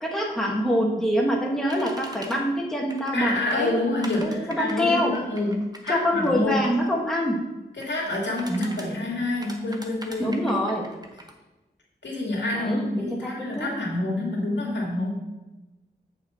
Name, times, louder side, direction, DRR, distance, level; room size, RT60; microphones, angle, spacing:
voice 1, 0.0-3.7 4.2-5.1 5.9-7.4 8.5-8.8 10.2-10.8 12.5-13.7, equal, ahead, -2 dB, 1.6 m, -25 dB
sound 1, 1.7-2.4 2.9-3.2 3.5-6.8 7.8-8.9 9.4-11.3, right 1 dB, 20° right, 1.1 m, -42 dB
voice 2, 3.1-6.7 7.7-10.4 12.0-15.1, left 2 dB, 80° left, -2 dB, 2.3 m, -27 dB
8.2 x 5.9 x 4.3 m, 1.1 s
wide cardioid pair, 90°, 18 cm